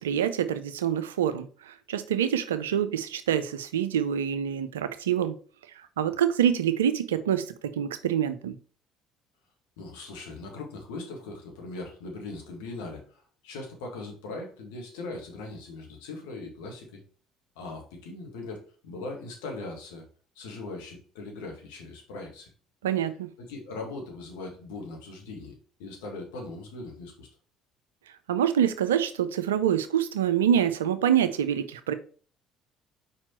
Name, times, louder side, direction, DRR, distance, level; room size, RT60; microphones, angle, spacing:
voice 1, 0.0-5.4 6.0-8.6 22.8-23.3 28.3-31.9, right 9 dB, 85° right, 0.5 m, -26 dB
voice 2, 9.8-17.0 17.6-20.0 20.4-22.5 23.4-27.3, left 3 dB, 75° left, 1.9 m, -40 dB
4.9 x 4.4 x 4.4 m
hypercardioid pair, 60°, 0 cm